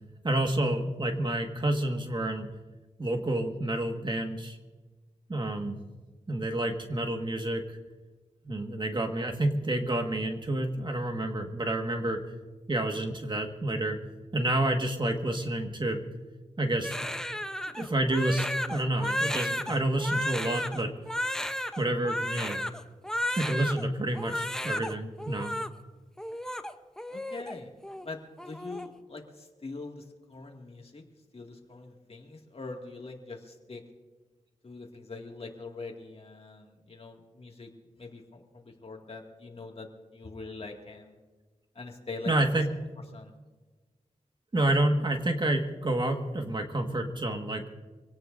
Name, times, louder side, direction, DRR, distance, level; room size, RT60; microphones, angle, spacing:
voice 1, 0.2-2.5 3.0-4.6 5.3-5.8 6.3-7.8 8.4-12.2 12.7-14.0 14.3-16.0 16.6-17.2 17.7-20.9 21.8-22.6 23.4-25.5 42.2-42.7 44.5-47.6, right 1 dB, 35° right, 4 dB, 1.7 m, -29 dB
Crying sobbing, 16.8-23.8 24.1-24.9 25.2-25.7 26.2-27.5 27.8-28.1 28.4-28.9, left 1 dB, 5° left, 0.8 m, -33 dB
voice 2, 27.1-27.7 28.0-31.0 31.3-33.8 34.6-37.7 38.0-41.2 41.8-42.5 43.1-43.3, left 3 dB, 50° left, 2 dB, 2.2 m, -43 dB
25.0 x 17.5 x 2.6 m, 1.3 s
wide cardioid pair, 75°, 13 cm